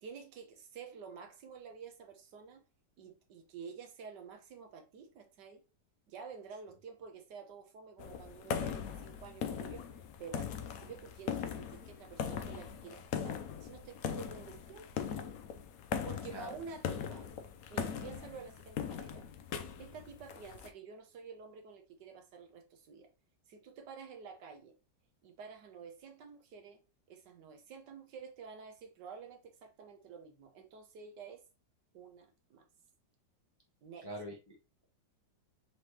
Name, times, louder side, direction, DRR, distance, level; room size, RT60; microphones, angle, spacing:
voice 1, 0.0-2.6 3.0-5.6 6.1-9.9 10.2-15.1 16.0-17.3 17.7-19.2 19.8-23.1 23.5-24.7 25.2-26.8 27.1-31.4 31.9-32.6 33.8-34.1, right 6 dB, 75° right, 1.5 m, -50 dB
sound 1, 8.0-20.7, left 7 dB, 65° left, 0.9 m, -40 dB
voice 2, 16.3-16.6 34.0-34.8, right 1 dB, 20° left, 0.7 m, -45 dB
4.3 x 3.4 x 2.9 m
omnidirectional pair, 1.9 m